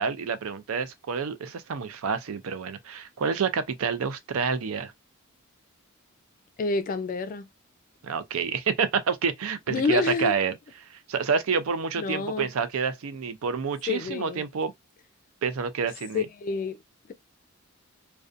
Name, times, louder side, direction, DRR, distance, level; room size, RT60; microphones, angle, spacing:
voice 1, 0.0-4.9 8.0-10.5 10.9-14.7 15.4-16.3, right 5 dB, 75° right, 0.5 m, -28 dB
voice 2, 6.6-7.5 9.7-10.3 12.0-12.5 13.9-14.5 16.1-16.8, left 4 dB, 40° left, 0.3 m, -28 dB
2.5 x 2.2 x 2.5 m
head